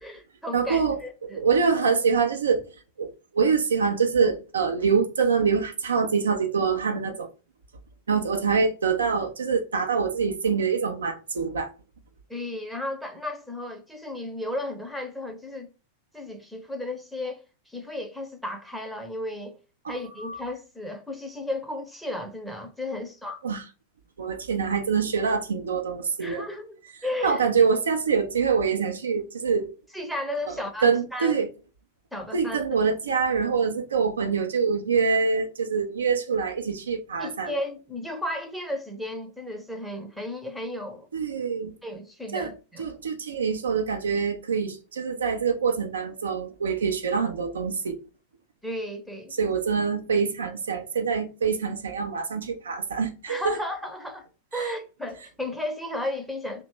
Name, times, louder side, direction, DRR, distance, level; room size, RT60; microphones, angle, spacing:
voice 1, 0.0-1.4 12.3-15.7 16.1-17.4 17.7-19.6 19.9-23.4 26.2-26.8 27.0-27.4 29.9-31.4 32.1-32.6 37.2-41.1 41.8-42.9 48.6-49.4 53.3-54.3 54.5-56.6, left 1 dB, ahead, 0.7 m, -34 dB
voice 2, 0.5-2.7 3.0-3.1 3.3-7.3 8.1-11.7 19.8-20.4 23.4-23.6 24.2-26.4 27.2-29.7 30.5-30.6 30.8-31.5 32.3-37.5 41.1-41.7 42.3-42.5 42.8-48.0 49.3-53.6 54.5-54.7, right 5 dB, 70° right, 0.4 m, -25 dB
2.8 x 2.2 x 3.0 m
figure-of-eight pair, 90°, 0 cm